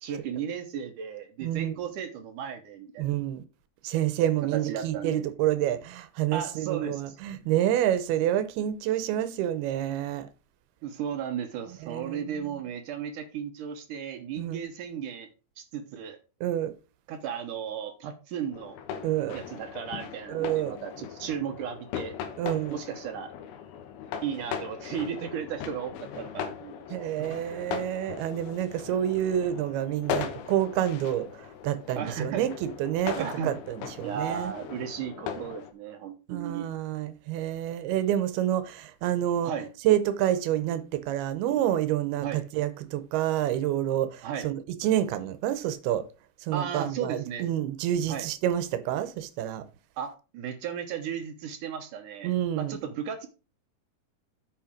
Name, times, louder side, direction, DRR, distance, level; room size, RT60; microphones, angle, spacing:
voice 1, 0.0-3.1 4.5-5.3 6.3-7.2 10.8-15.3 15.6-16.2 17.1-18.8 19.3-22.1 22.7-23.3 24.2-27.6 32.0-32.5 33.2-33.6 34.0-36.7 39.4-39.7 42.2-42.4 44.2-44.5 46.5-47.5 48.1-48.3 50.0-53.3, right 8 dB, 70° right, 2.2 m, -35 dB
voice 2, 1.4-1.8 3.0-3.4 3.8-10.3 11.8-12.3 14.4-14.6 16.4-16.7 19.0-19.4 20.3-20.8 22.4-22.8 26.9-31.3 31.6-33.2 33.4-34.5 36.3-39.5 39.8-46.0 46.5-49.6 52.2-52.8, right 12 dB, 85° right, 2.8 m, -28 dB
sound 1, 18.5-35.7, left 8 dB, 80° left, 3.0 m, -39 dB
8.6 x 5.9 x 5.1 m
omnidirectional pair, 4.4 m